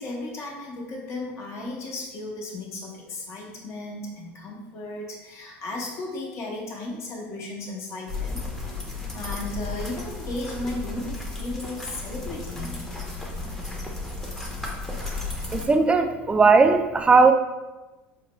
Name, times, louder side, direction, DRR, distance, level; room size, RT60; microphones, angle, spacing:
voice 1, 0.0-8.4 9.1-13.0, left 2 dB, 45° left, -1 dB, 1.0 m, -35 dB
sound 1, 8.1-15.6, left 3 dB, 5° left, 0.8 m, -34 dB
voice 2, 15.5-17.3, right 4 dB, 15° right, 6 dB, 0.4 m, -17 dB
4.6 x 2.2 x 3.0 m, 1.1 s
hypercardioid pair, 90°, 6 cm